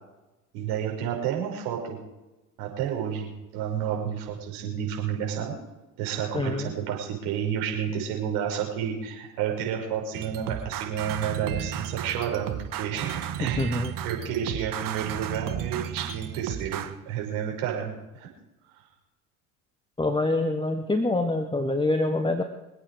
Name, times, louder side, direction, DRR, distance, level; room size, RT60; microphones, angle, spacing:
voice 1, 0.5-2.0 2.6-5.5 6.0-18.3, right 8 dB, 65° right, 0 dB, 5.9 m, -30 dB
voice 2, 6.3-6.7 13.4-13.9 20.0-22.4, left 2 dB, 10° left, 7 dB, 1.5 m, -25 dB
sound 1, 10.1-17.0, right 10 dB, 50° right, 1.6 m, -34 dB
26.5 x 8.9 x 5.0 m, 1.0 s
hypercardioid pair, 70°, 43 cm